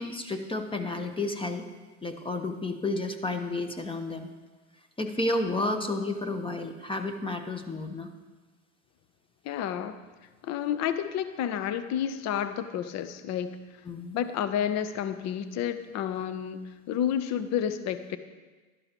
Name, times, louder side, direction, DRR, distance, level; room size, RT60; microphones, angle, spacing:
voice 1, 0.0-1.6 2.0-4.3 5.0-8.1 13.8-14.2, left 2 dB, 15° left, 7 dB, 0.9 m, -31 dB
voice 2, 9.4-10.0 10.4-13.6 14.1-16.6 16.9-18.2, left 9 dB, 40° left, 11 dB, 0.7 m, -30 dB
11.5 x 11.5 x 3.0 m, 1.3 s
hypercardioid pair, 90°, 41 cm